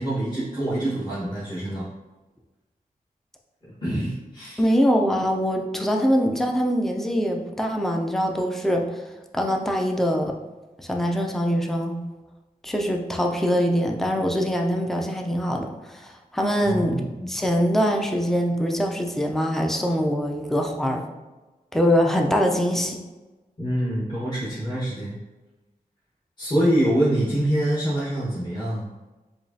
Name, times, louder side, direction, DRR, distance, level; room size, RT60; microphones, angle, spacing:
voice 1, 0.0-1.8 3.6-4.6 16.6-17.3 23.6-25.2 26.4-28.9, right 1 dB, 30° left, -9 dB, 1.4 m, -25 dB
voice 2, 4.6-8.9 9.3-10.4 10.8-12.0 12.6-21.0 21.7-23.0, equal, ahead, 2 dB, 0.5 m, -23 dB
5.0 x 2.3 x 2.7 m, 1.1 s
wide cardioid pair, 70°, 15 cm